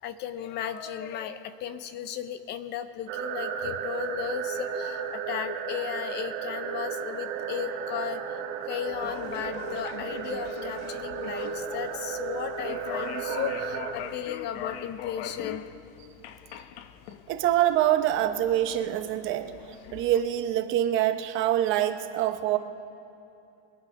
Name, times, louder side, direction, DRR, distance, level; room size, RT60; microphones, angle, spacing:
voice 1, 0.0-8.2 8.7-15.6, left 10 dB, 35° left, 12 dB, 0.5 m, -35 dB
sound 1, 3.1-13.9, right 7 dB, 55° right, 2.2 m, -34 dB
sound 2, 8.9-20.2, left 10 dB, 85° left, 0.9 m, -42 dB
voice 2, 17.3-19.5 19.9-22.6, right 12 dB, 40° right, 8 dB, 0.9 m, -25 dB
23.5 x 9.2 x 5.3 m, 2.9 s
supercardioid pair, 160°, 31 cm